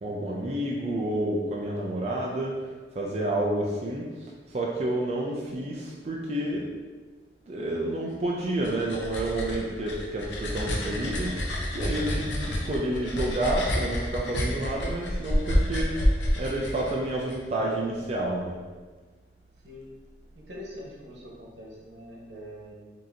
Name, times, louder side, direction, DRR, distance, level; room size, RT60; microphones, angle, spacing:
voice 1, 0.0-2.6 2.9-6.7 7.5-16.0 16.4-18.6, right 1 dB, 35° right, -2 dB, 0.4 m, -29 dB
sound 1, 8.4-17.4, equal, 85° left, 0.7 m, -29 dB
voice 2, 20.3-22.7, equal, 85° right, -4 dB, 1.1 m, -43 dB
5.2 x 2.8 x 2.7 m, 1.4 s
head